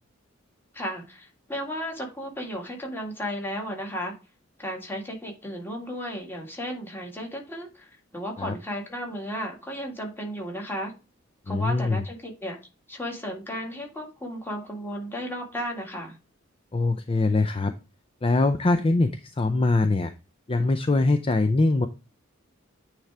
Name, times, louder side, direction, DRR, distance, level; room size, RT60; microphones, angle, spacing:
voice 1, 0.7-4.1 4.6-10.9 11.5-12.6 12.9-16.2, equal, 10° left, 0 dB, 1.9 m, -34 dB
voice 2, 11.5-12.0 16.7-17.7 18.2-20.1 20.5-21.9, left 2 dB, 30° left, 8 dB, 0.5 m, -23 dB
9.2 x 3.4 x 4.8 m, 0.31 s
head